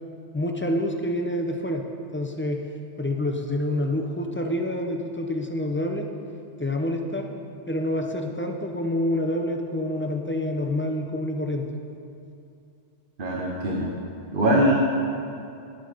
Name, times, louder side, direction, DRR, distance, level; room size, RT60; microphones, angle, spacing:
voice 1, 0.3-1.8 2.1-2.6 3.0-6.0 6.6-7.3 7.7-11.6, left 1 dB, 15° left, 2 dB, 0.5 m, -27 dB
voice 2, 13.2-13.9 14.3-14.8, right 1 dB, 50° right, -2 dB, 1.1 m, -22 dB
9.9 x 7.9 x 5.1 m, 2.6 s
omnidirectional pair, 1.2 m